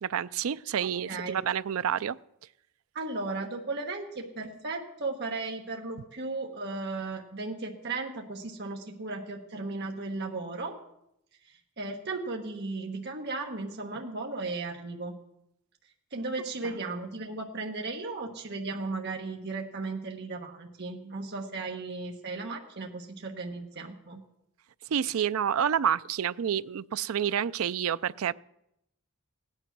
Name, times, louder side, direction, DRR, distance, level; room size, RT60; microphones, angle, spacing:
voice 1, 0.0-2.2 16.6-16.7 24.9-28.3, right 8 dB, 70° right, 16 dB, 0.4 m, -29 dB
voice 2, 0.8-1.4 2.9-10.7 11.4-15.2 16.1-24.2, right 3 dB, 50° right, 1 dB, 1.2 m, -36 dB
16.5 x 9.8 x 6.0 m, 0.81 s
head